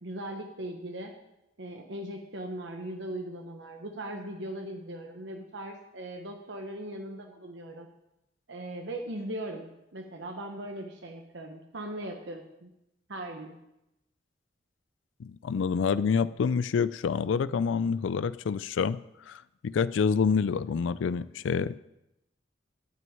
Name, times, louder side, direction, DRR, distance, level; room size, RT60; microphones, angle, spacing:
voice 1, 0.0-1.1 1.6-7.9 8.5-12.7 13.1-13.6, right 1 dB, 70° right, 4 dB, 1.1 m, -39 dB
voice 2, 15.2-19.0 19.3-21.8, left 6 dB, 80° left, 16 dB, 0.4 m, -27 dB
11.0 x 6.2 x 8.9 m, 0.89 s
head